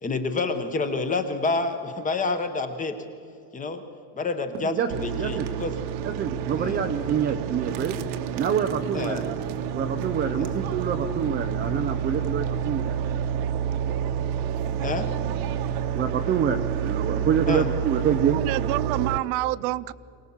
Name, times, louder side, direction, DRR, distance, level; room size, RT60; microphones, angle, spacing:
voice 1, 0.0-3.0 3.5-3.8 4.1-5.7 6.6-6.9 8.9-9.3 10.4-10.5 14.8-15.1 17.5-17.7, left 3 dB, 15° left, 8 dB, 1.1 m, -28 dB
voice 2, 4.6-5.5 6.0-8.0 8.3-9.2 9.7-12.9 15.9-18.4, right 7 dB, 20° right, 5 dB, 0.5 m, -26 dB
sound 1, 4.9-19.2, right 8 dB, 55° right, 1.2 m, -29 dB
voice 3, 18.3-19.9, right 18 dB, 70° right, 17 dB, 0.6 m, -27 dB
23.5 x 18.5 x 7.2 m, 2.3 s
cardioid pair, 170°, 48 cm